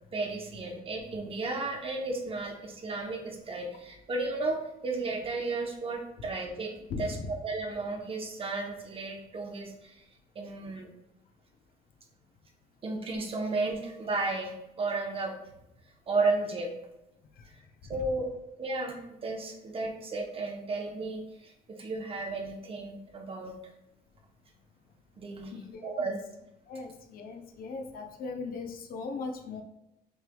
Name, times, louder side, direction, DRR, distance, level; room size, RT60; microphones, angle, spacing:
voice 1, 0.1-6.7 7.0-10.0 10.3-10.9 12.8-15.3 16.1-16.7 17.5-17.6 17.9-18.3 18.6-23.5 25.2-25.5 25.8-26.2, right 3 dB, 35° right, 2 dB, 0.8 m, -33 dB
voice 2, 6.9-7.3 17.3-18.2 25.4-26.1 26.7-29.6, left 4 dB, 60° left, 4 dB, 0.7 m, -39 dB
6.2 x 3.3 x 2.3 m, 0.90 s
cardioid pair, 110°, 17 cm